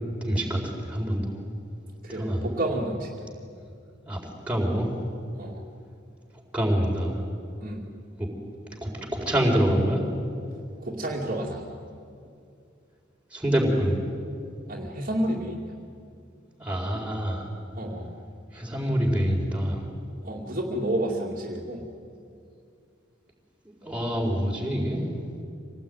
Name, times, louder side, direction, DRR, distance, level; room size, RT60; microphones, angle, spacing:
voice 1, 0.2-1.4 2.1-2.5 4.1-4.2 4.5-4.9 6.5-7.2 8.2-8.3 8.8-10.0 13.3-14.0 16.6-17.5 18.5-19.8 23.8-25.0, equal, 5° right, -2 dB, 4.5 m, -26 dB
voice 2, 2.0-3.2 5.4-5.6 7.6-7.9 10.8-11.8 14.7-15.7 17.7-18.1 20.2-21.9, right 1 dB, 45° right, -2 dB, 2.6 m, -30 dB
27.0 x 18.5 x 9.4 m, 2.4 s
head